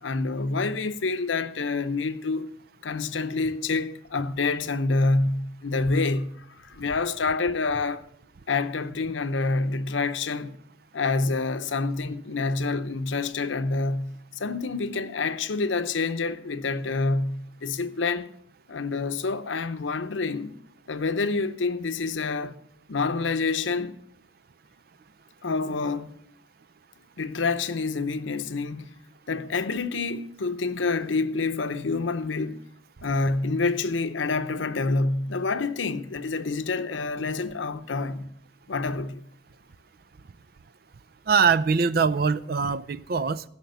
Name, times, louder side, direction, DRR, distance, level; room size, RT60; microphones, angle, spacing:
voice 1, 0.0-2.5 2.8-8.0 8.5-10.6 10.9-18.3 18.7-20.6 20.9-22.6 22.9-24.0 25.4-26.1 27.2-28.9 29.3-32.6 33.0-38.3 38.7-39.2, left 3 dB, 85° left, 0.8 m, -27 dB
voice 2, 41.3-43.4, right 5 dB, 50° right, 0.5 m, -22 dB
16.0 x 5.8 x 8.0 m
head